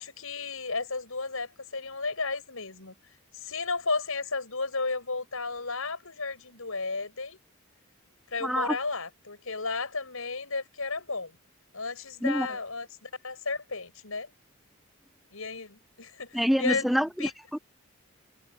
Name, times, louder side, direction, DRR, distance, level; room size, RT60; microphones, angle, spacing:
voice 1, 0.0-2.9 3.3-7.4 8.3-11.4 11.7-14.3 15.3-17.3, left 4 dB, 80° left, 6.1 m, -33 dB
voice 2, 8.4-8.8 12.2-12.5 16.3-17.6, equal, ahead, 0.4 m, -26 dB
head